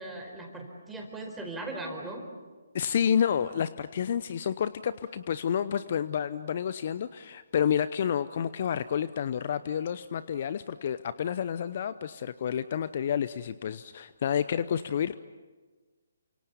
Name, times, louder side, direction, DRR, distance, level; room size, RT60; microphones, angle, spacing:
voice 1, 0.0-2.2, right 2 dB, 5° right, 1 dB, 4.6 m, -38 dB
voice 2, 2.7-15.2, left 8 dB, 45° left, 15 dB, 0.7 m, -29 dB
29.0 x 26.0 x 7.1 m, 1.3 s
figure-of-eight pair, 140°, 0 cm